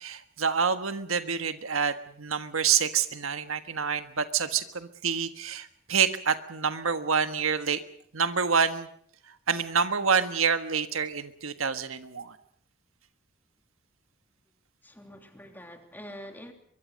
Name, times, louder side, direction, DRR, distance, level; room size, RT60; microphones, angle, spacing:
voice 1, 0.0-7.8 8.1-8.9 9.3-12.4, right 6 dB, 80° right, 9 dB, 1.5 m, -27 dB
voice 2, 14.8-16.5, equal, 10° left, 4 dB, 3.1 m, -45 dB
23.5 x 23.0 x 6.5 m, 0.66 s
head